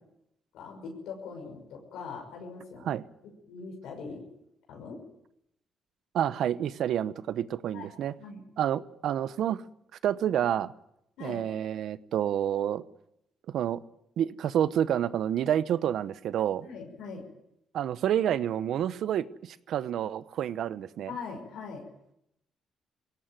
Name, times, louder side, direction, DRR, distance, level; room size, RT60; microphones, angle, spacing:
voice 1, 0.5-2.9 3.2-4.2 4.7-5.0 7.7-7.9 8.2-8.4 11.2-11.4 16.6-17.2 21.1-21.9, left 4 dB, 85° left, 1 dB, 6.1 m, -41 dB
voice 2, 6.1-8.1 8.6-9.6 10.0-10.7 11.2-12.8 13.5-13.8 14.2-16.7 17.7-21.1, right 10 dB, 75° right, 15 dB, 0.9 m, -29 dB
20.5 x 17.5 x 9.4 m, 0.81 s
cardioid pair, 90°, 0 cm